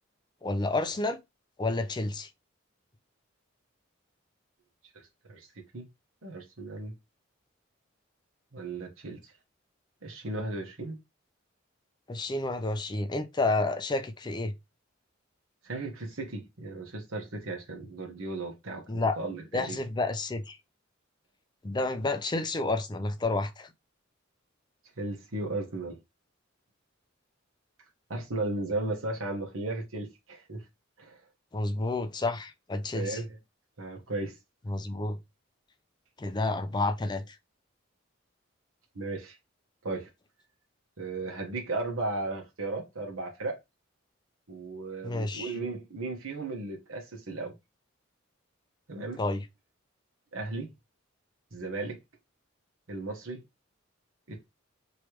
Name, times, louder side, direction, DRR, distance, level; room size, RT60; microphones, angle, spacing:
voice 1, 0.4-1.2 1.6-2.3 12.1-14.5 18.9-19.2 19.5-20.6 21.6-23.7 31.5-33.2 34.7-35.2 36.2-37.4 45.0-45.5 49.2-49.4, left 2 dB, 20° left, 0.4 m, -30 dB
voice 2, 6.2-6.9 8.5-9.2 10.0-11.0 15.6-19.8 25.0-26.0 28.1-30.6 31.0-31.2 32.9-33.3 33.8-34.3 38.9-39.4 39.8-40.1 41.0-43.6 44.5-47.5 48.9-49.2 50.3-50.7 51.5-52.0 52.9-53.4 54.3-54.5, right 2 dB, 85° right, 1.2 m, -35 dB
3.3 x 3.0 x 2.9 m
head